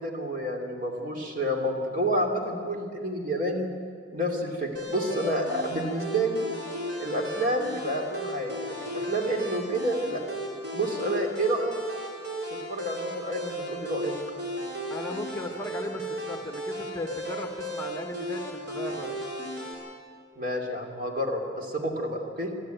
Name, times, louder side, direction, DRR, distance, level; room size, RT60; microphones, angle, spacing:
voice 1, 0.0-3.7 4.1-6.5 7.0-10.2 10.7-11.8 12.7-14.1 20.4-22.5, right 1 dB, 45° right, 2 dB, 2.7 m, -29 dB
sound 1, 4.7-19.7, equal, 60° right, 5.0 m, -35 dB
voice 2, 14.9-19.2, left 1 dB, 15° left, 4 dB, 1.3 m, -36 dB
23.0 x 13.0 x 9.1 m, 2.2 s
head